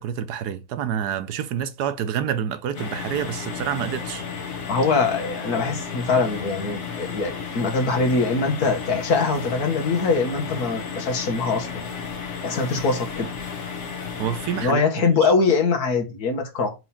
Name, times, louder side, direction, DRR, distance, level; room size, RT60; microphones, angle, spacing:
voice 1, 0.0-4.2 14.0-14.8 15.1-15.3, right 9 dB, 90° right, 1.3 m, -28 dB
sound 1, 2.7-14.7, left 6 dB, 50° left, 1.4 m, -33 dB
voice 2, 4.7-11.8 12.4-13.3 14.6-16.7, left 4 dB, 70° left, 1.8 m, -23 dB
4.7 x 3.9 x 5.6 m
omnidirectional pair, 1.7 m